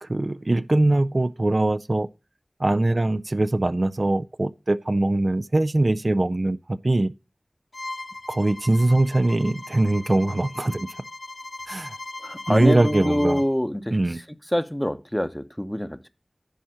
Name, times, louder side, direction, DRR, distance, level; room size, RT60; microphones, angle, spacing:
voice 1, 0.0-2.1 2.6-7.1 8.3-10.9 11.7-11.9 12.5-13.4 13.9-14.2, right 2 dB, 55° right, 0.4 m, -22 dB
Bowed string instrument, 7.7-13.5, left 2 dB, 70° left, 0.4 m, -38 dB
voice 2, 12.2-14.2 14.5-16.1, equal, 10° left, 0.8 m, -25 dB
10.5 x 4.3 x 6.3 m
wide cardioid pair, 50°, 0 cm